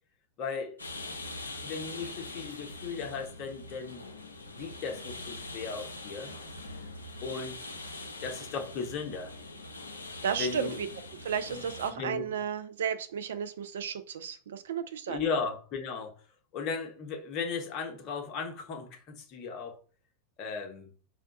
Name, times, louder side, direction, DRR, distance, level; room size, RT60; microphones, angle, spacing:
voice 1, 0.4-0.8 1.2-1.3 1.6-4.0 4.5-6.3 7.2-7.6 8.2-9.3 10.4-10.8 11.5-11.6 11.9-12.3 15.1-16.1 16.5-19.8 20.4-20.9, left 5 dB, 40° left, 0.7 m, -36 dB
sound 1, 0.8-11.9, left 2 dB, 80° left, 0.5 m, -43 dB
voice 2, 10.2-10.9 11.2-15.2, right 7 dB, 60° right, 0.3 m, -33 dB
2.5 x 2.2 x 3.9 m
figure-of-eight pair, 90°, 0 cm